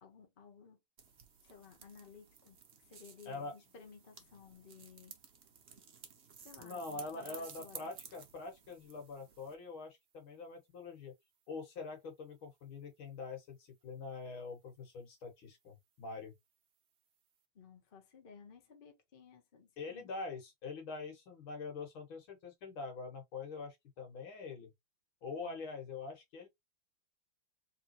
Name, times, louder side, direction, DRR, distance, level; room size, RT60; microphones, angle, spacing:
voice 1, 0.0-0.8 1.4-5.2 6.4-7.9 17.5-20.1 25.4-25.6, left 6 dB, 30° left, 1.1 m, -57 dB
sound 1, 1.0-9.6, right 7 dB, 50° right, 0.9 m, -55 dB
voice 2, 3.3-3.6 6.6-11.1 11.5-16.3 19.8-24.7 25.2-26.5, left 4 dB, 90° left, 2.5 m, -44 dB
3.8 x 3.8 x 2.9 m
omnidirectional pair, 2.2 m